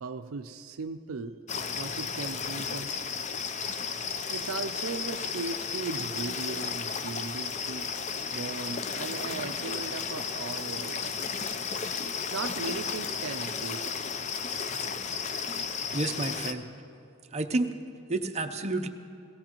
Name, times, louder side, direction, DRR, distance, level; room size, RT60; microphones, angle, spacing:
voice 1, 0.0-1.4 1.8-2.9 4.3-7.9 8.3-11.4 12.3-14.0, right 4 dB, 70° right, 7 dB, 0.5 m, -37 dB
sound 1, 1.5-16.5, left 6 dB, 35° left, 0.5 m, -34 dB
voice 2, 15.9-16.7 17.3-17.7 18.1-18.9, right 2 dB, 30° right, 6 dB, 0.7 m, -30 dB
17.5 x 17.0 x 3.0 m, 2.7 s
head